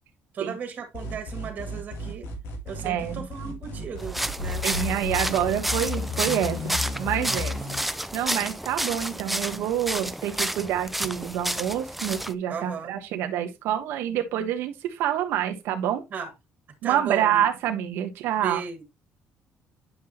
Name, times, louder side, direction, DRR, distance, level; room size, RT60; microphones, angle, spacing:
voice 1, 0.3-2.3 2.6-4.7 12.5-13.0 16.1-16.3 16.8-17.4 18.4-18.8, right 6 dB, 40° right, 2.2 m, -35 dB
sound 1, 0.9-7.8, left 3 dB, 80° left, 2.9 m, -33 dB
voice 2, 2.8-3.2 4.6-7.6 8.1-16.0 16.8-18.6, right 10 dB, 85° right, 1.1 m, -27 dB
sound 2, 4.0-12.3, right 1 dB, 5° right, 0.5 m, -31 dB
9.3 x 5.8 x 2.9 m
cardioid pair, 155°, 4 cm